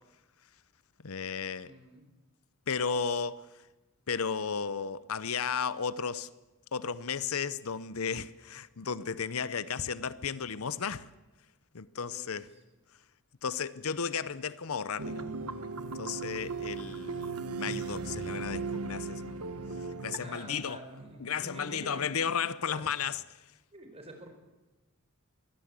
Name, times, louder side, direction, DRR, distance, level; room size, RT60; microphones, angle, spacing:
voice 1, 1.0-1.7 2.7-3.4 4.1-6.3 6.7-11.1 11.7-12.5 13.4-15.3 16.0-19.3 20.0-20.8 21.2-23.2, left 6 dB, 70° left, 0.7 m, -34 dB
voice 2, 1.6-2.0 12.0-12.6 20.2-22.9 23.7-24.3, right 1 dB, 25° right, 4.4 m, -48 dB
sound 1, 15.0-20.2, right 4 dB, 80° right, 1.3 m, -37 dB
23.0 x 16.5 x 8.3 m
head